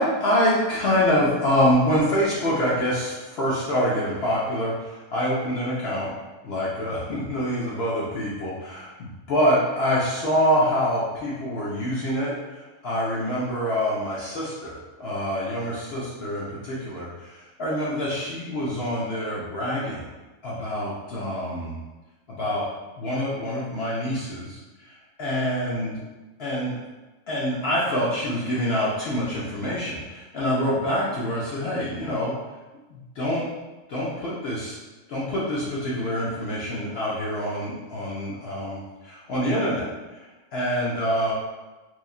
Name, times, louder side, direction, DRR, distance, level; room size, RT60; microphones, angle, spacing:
voice 1, 0.0-6.1 6.4-20.1 20.4-21.7 22.4-22.6 23.0-24.6 24.8-26.0 26.4-26.8 27.3-32.3 32.9-33.5 33.9-34.8 35.1-41.3, equal, 65° left, -6 dB, 0.7 m, -26 dB
3.0 x 2.3 x 2.3 m, 1.2 s
omnidirectional pair, 1.4 m